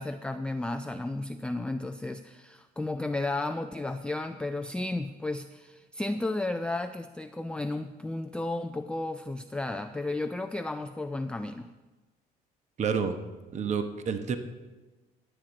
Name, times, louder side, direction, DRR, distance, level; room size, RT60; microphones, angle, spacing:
voice 1, 0.0-11.7, left 2 dB, 5° left, 7 dB, 0.4 m, -33 dB
voice 2, 12.8-13.2 13.5-14.4, right 6 dB, 45° right, 8 dB, 1.0 m, -29 dB
16.0 x 9.0 x 4.0 m, 1.2 s
cardioid pair, 110°, 17 cm